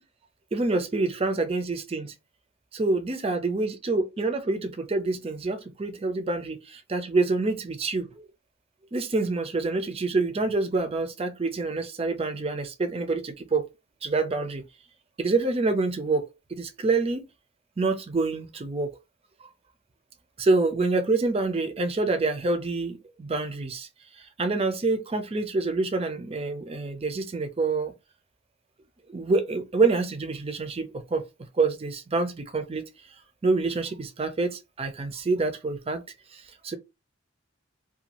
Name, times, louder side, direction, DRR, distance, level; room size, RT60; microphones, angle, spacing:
voice 1, 0.5-2.1 2.7-8.1 8.9-13.6 14.0-14.6 15.2-17.2 17.8-18.9 20.4-23.9 24.2-27.9 29.1-31.2 31.5-32.8 33.4-36.0 36.3-36.8, right 3 dB, 30° right, 0.5 m, -27 dB
2.6 x 2.3 x 2.9 m
head